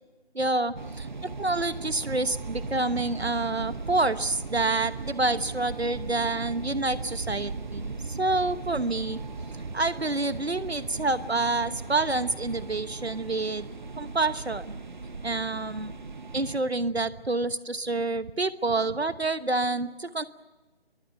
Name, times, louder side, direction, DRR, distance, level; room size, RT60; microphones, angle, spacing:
voice 1, 0.3-9.2 9.5-13.7 14.0-14.7 15.2-16.0 16.3-20.2, right 2 dB, 80° right, 14 dB, 1.2 m, -28 dB
sound 1, 0.8-16.6, right 3 dB, 50° right, 1.5 m, -38 dB
27.0 x 22.5 x 6.8 m, 1.2 s
figure-of-eight pair, 155°, 32 cm